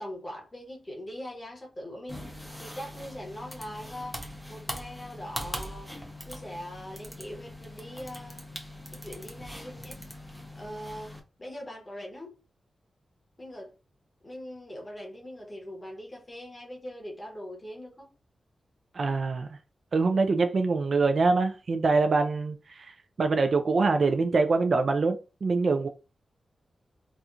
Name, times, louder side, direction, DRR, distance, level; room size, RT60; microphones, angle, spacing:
voice 1, 0.0-5.9 6.2-8.4 8.9-10.0 10.5-12.4 13.4-13.7 14.2-18.1, equal, 20° left, 1.1 m, -42 dB
sound 1, 2.1-11.2, equal, ahead, 0.6 m, -41 dB
voice 2, 18.9-19.6 19.9-25.9, right 3 dB, 45° right, 0.3 m, -24 dB
4.2 x 2.3 x 2.5 m
wide cardioid pair, 170°, 0 cm